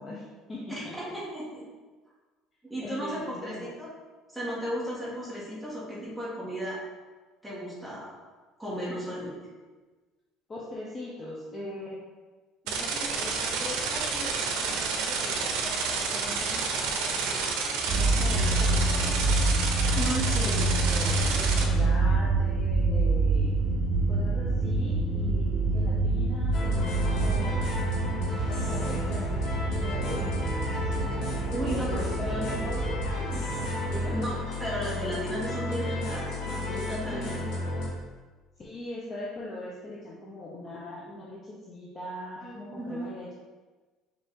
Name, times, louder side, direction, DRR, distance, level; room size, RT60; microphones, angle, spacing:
voice 1, 0.0-1.0 2.8-3.7 10.5-12.0 12.6-19.1 20.4-23.6 24.1-27.8 28.5-31.1 31.6-33.0 33.3-33.5 33.9-34.2 37.1-37.6 38.6-43.3, left 1 dB, 25° left, -5 dB, 0.6 m, -40 dB
voice 2, 0.7-1.6 2.6-3.9 4.3-6.8 7.4-8.1 8.6-9.4 19.9-20.6 21.1-21.7 31.5-32.4 34.1-34.3 34.6-37.4 42.4-43.1, equal, ahead, -9 dB, 1.4 m, -35 dB
sound 1, 12.7-21.6, right 4 dB, 80° right, 0.7 m, -30 dB
sound 2, 17.9-34.2, right 2 dB, 30° right, 0.9 m, -27 dB
sound 3, 26.5-37.9, left 1 dB, 70° left, 1.3 m, -33 dB
5.3 x 2.7 x 3.6 m, 1.3 s
cardioid pair, 155°, 0 cm